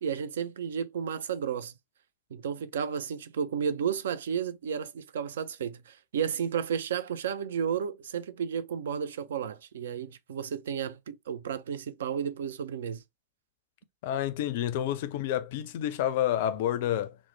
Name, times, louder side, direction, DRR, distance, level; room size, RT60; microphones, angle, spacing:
voice 1, 0.0-1.7 2.3-13.0, right 7 dB, 60° right, 0.3 m, -32 dB
voice 2, 14.0-17.2, left 11 dB, 50° left, 0.4 m, -29 dB
2.9 x 2.0 x 3.1 m
figure-of-eight pair, 90°, 0 cm